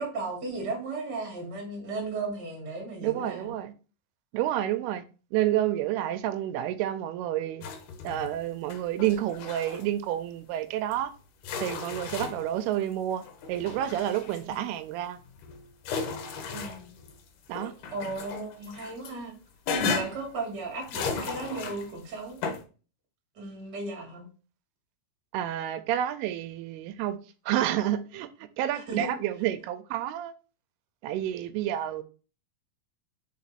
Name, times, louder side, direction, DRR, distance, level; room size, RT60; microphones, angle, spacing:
voice 1, 0.0-3.5 14.4-14.6 16.5-16.9 17.9-19.3 19.8-22.4 23.4-24.3 28.7-29.1, right 3 dB, 35° right, 2.1 m, -35 dB
voice 2, 3.0-3.7 4.3-5.0 5.3-7.6 8.0-11.1 11.6-13.2 13.5-15.2 17.5-17.7 19.8-19.9 25.3-27.2 27.5-30.3 31.0-32.0, right 12 dB, 85° right, 2.5 m, -29 dB
sound 1, 7.6-8.4 8.7-9.9 10.9-11.0 11.4-12.6 13.2-14.6 15.2-17.2 17.5-19.1 19.7-20.3 20.8-22.0 22.4-22.6, left 5 dB, 70° left, 2.0 m, -35 dB
5.2 x 4.5 x 4.1 m
omnidirectional pair, 4.5 m